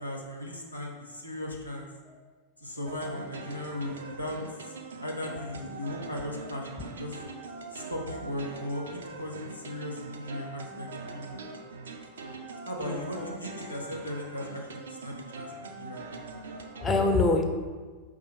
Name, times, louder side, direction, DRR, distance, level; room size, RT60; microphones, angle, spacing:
voice 1, 0.0-1.8 2.6-4.7 5.0-7.1 7.7-11.4 12.6-16.0, left 1 dB, 90° left, -1 dB, 0.6 m, -37 dB
sound 1, 2.8-16.9, right 3 dB, 70° right, 0.4 m, -42 dB
voice 2, 12.8-13.4 16.6-17.5, left 3 dB, 15° left, 3 dB, 0.4 m, -27 dB
4.8 x 2.5 x 4.1 m, 1.4 s
figure-of-eight pair, 90°, 0 cm